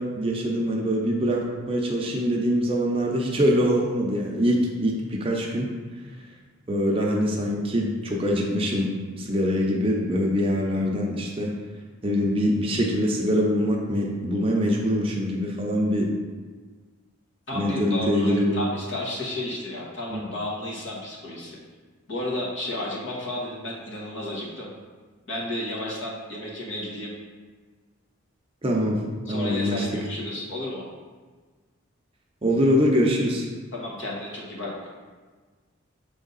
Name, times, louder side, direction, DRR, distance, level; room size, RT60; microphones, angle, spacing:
voice 1, 0.0-5.7 6.7-11.5 12.0-16.1 17.5-18.5 20.1-20.2 28.6-29.0 29.3-29.9 32.4-33.5, equal, 25° right, -1 dB, 0.7 m, -24 dB
voice 2, 17.5-21.6 22.1-24.7 25.3-27.1 29.3-30.8 33.7-34.9, left 1 dB, 60° left, -4 dB, 1.4 m, -32 dB
6.5 x 3.6 x 4.0 m, 1.4 s
head